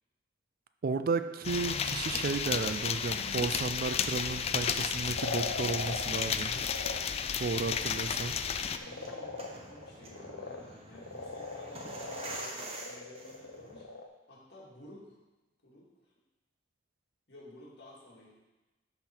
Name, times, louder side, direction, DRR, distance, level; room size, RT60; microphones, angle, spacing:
voice 1, 0.8-6.5 7.4-8.4, right 4 dB, 50° right, 10 dB, 0.4 m, -33 dB
sound 1, 1.4-8.8, left 7 dB, 35° left, 0.3 m, -33 dB
sound 2, 5.1-6.2 6.5-7.0 7.3-7.6 8.0-8.1 8.3-8.4 8.7-10.6 10.9-14.1, left 3 dB, 75° left, 0.8 m, -40 dB
sound 3, 7.6-13.8, right 2 dB, 30° right, 1.0 m, -46 dB
voice 2, 7.7-8.1 8.8-13.9 14.3-15.2 15.6-15.9 17.3-18.3, left 1 dB, 60° left, -4 dB, 2.2 m, -53 dB
11.5 x 3.9 x 4.4 m, 1.1 s
head